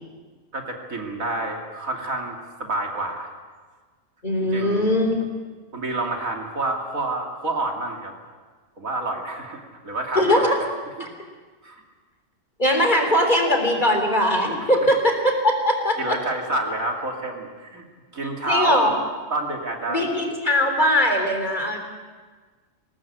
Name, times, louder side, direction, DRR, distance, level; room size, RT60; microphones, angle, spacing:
voice 1, 0.5-3.3 4.5-4.9 5.7-8.1 8.8-10.7 11.0-11.1 11.6-11.8 14.6-14.7 16.0-17.8 18.1-18.8 19.3-20.1, right 2 dB, 80° right, 2 dB, 3.1 m, -28 dB
voice 2, 4.2-5.2 10.2-10.5 11.0-11.1 12.6-16.1 18.5-18.9 19.9-21.8, left 1 dB, 35° left, 3 dB, 3.8 m, -20 dB
21.0 x 18.5 x 8.9 m, 1.4 s
omnidirectional pair, 1.4 m